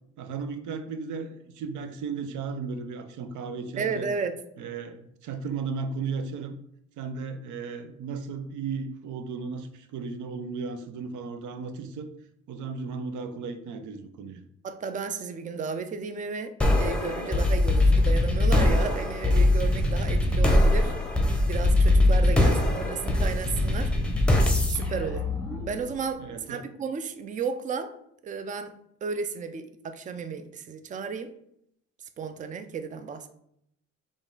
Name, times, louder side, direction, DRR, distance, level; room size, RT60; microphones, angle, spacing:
voice 1, 0.2-4.1 4.6-6.5 7.0-12.1 12.5-14.4 22.3-22.5 26.2-26.7, right 5 dB, 80° right, 9 dB, 0.5 m, -35 dB
voice 2, 3.8-4.4 14.6-16.5 16.8-20.9 21.4-23.9 24.7-25.3 25.6-27.9 28.2-28.7 29.0-31.3 32.2-33.3, right 5 dB, 25° right, 10 dB, 0.4 m, -33 dB
sound 1, 16.6-26.0, left 1 dB, 5° left, 0.7 m, -22 dB
3.9 x 2.4 x 3.8 m, 0.73 s
cardioid pair, 90°, 30 cm